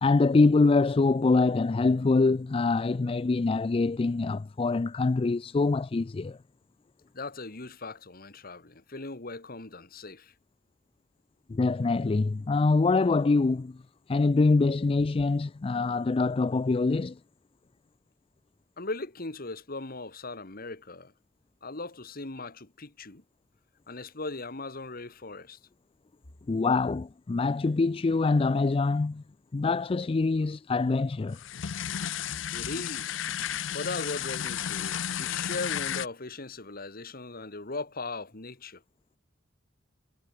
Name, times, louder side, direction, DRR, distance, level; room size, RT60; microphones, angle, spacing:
voice 1, 0.0-6.4 11.5-13.8 14.1-17.2 26.5-29.2 29.5-31.4, left 3 dB, 30° left, 0.4 m, -24 dB
voice 2, 7.1-10.3 18.8-21.1 21.6-23.2 23.9-25.6 32.5-33.3 33.7-38.8, left 3 dB, 50° left, 2.0 m, -38 dB
sound 1, 31.3-36.1, left 9 dB, 85° left, 0.6 m, -33 dB
head